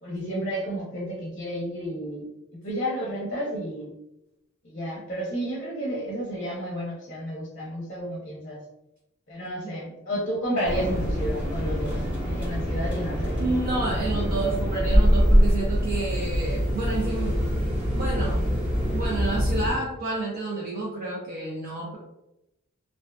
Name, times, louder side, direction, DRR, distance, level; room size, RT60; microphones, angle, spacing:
voice 1, 0.0-2.3 2.6-3.9 4.6-8.6 9.3-11.9 12.2-13.5, equal, 35° left, -5 dB, 0.6 m, -31 dB
sound 1, 10.6-19.7, equal, 5° right, 0.9 m, -24 dB
voice 2, 13.4-17.4 17.9-18.5 18.9-22.0, right 2 dB, 40° right, -4 dB, 0.4 m, -30 dB
2.4 x 2.3 x 2.2 m, 0.87 s
head